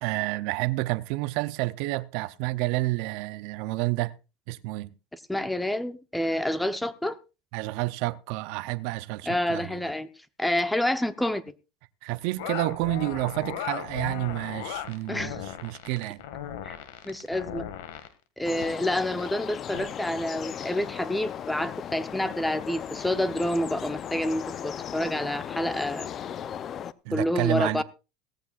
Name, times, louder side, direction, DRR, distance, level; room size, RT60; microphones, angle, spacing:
voice 1, 0.0-4.1 4.5-4.9 7.5-9.9 12.0-16.2 27.0-27.8, right 20 dB, 70° right, 0.6 m, -29 dB
voice 2, 5.1-7.2 9.3-10.1 10.4-11.4 15.1-15.4 16.6-16.8 17.0-17.6 18.4-26.1 27.1-27.8, left 1 dB, 5° left, 0.8 m, -28 dB
sound 1, 12.4-18.1 18.5-18.7 19.2-19.3 19.7-19.9, left 10 dB, 85° left, 1.9 m, -36 dB
sound 2, 18.4-26.9, left 9 dB, 35° left, 0.6 m, -37 dB
18.0 x 14.5 x 2.5 m
supercardioid pair, 125°, 0 cm